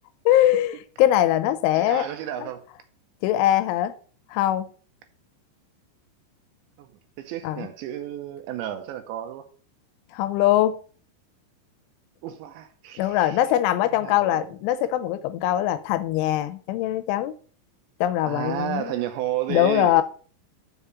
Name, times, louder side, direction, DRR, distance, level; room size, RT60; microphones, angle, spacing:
voice 1, 0.3-2.1 3.2-3.9 4.3-4.7 7.4-7.7 10.1-10.8 13.0-17.3 18.0-18.9 19.5-20.0, left 13 dB, 85° left, 3.0 m, -22 dB
voice 2, 1.7-2.6 6.8-6.9 7.2-9.5 12.2-13.4 13.8-14.5 18.2-20.0, right 11 dB, 80° right, 2.8 m, -32 dB
7.1 x 4.9 x 6.9 m
omnidirectional pair, 5.6 m